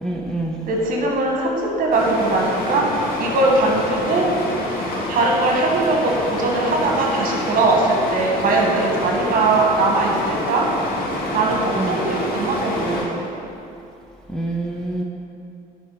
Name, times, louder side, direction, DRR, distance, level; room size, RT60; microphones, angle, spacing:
voice 1, 0.0-0.6 11.8-12.0 14.3-15.0, right 2 dB, 5° left, -2 dB, 0.8 m, -26 dB
voice 2, 0.7-2.9 3.2-4.3 5.1-10.7 11.3-13.3, right 2 dB, 55° right, -1 dB, 1.7 m, -20 dB
sound 1, 1.9-13.0, left 1 dB, 60° left, 1.9 m, -27 dB
9.9 x 4.5 x 5.7 m, 2.8 s
cardioid pair, 110°, 17 cm